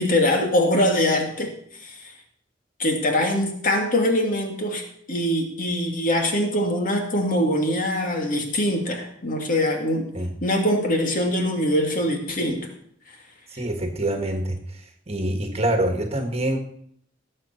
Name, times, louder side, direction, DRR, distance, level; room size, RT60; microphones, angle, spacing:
voice 1, 0.0-1.5 1.8-1.9 2.8-4.8 5.1-10.1 10.4-12.7, left 1 dB, 45° left, 2 dB, 2.5 m, -23 dB
voice 2, 13.5-14.6 15.1-16.6, right 1 dB, 35° right, 4 dB, 1.6 m, -25 dB
18.0 x 7.7 x 4.4 m, 0.67 s
head